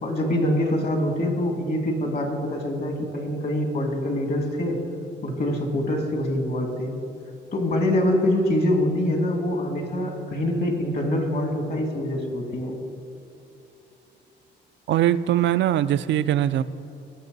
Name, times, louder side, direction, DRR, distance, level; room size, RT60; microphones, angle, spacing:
voice 1, 0.0-4.8 5.2-6.9 7.5-12.7, left 1 dB, 50° left, 3 dB, 2.2 m, -25 dB
voice 2, 14.9-16.6, right 12 dB, 65° right, 13 dB, 0.4 m, -21 dB
19.0 x 6.6 x 4.0 m, 2.8 s
cardioid pair, 90°, 20 cm